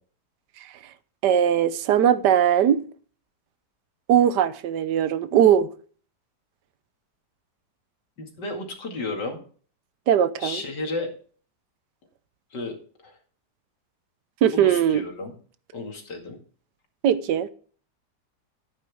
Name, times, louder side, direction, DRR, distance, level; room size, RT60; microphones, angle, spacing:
voice 1, 1.2-2.8 4.1-5.7 10.1-10.6 14.4-15.0 17.0-17.5, right 9 dB, 80° right, 1.3 m, -20 dB
voice 2, 8.2-9.4 10.4-11.1 12.5-12.7 13.0-13.2 14.5-15.3 15.7-16.4, left 2 dB, 85° left, 2.8 m, -33 dB
11.5 x 9.5 x 3.5 m
omnidirectional pair, 1.8 m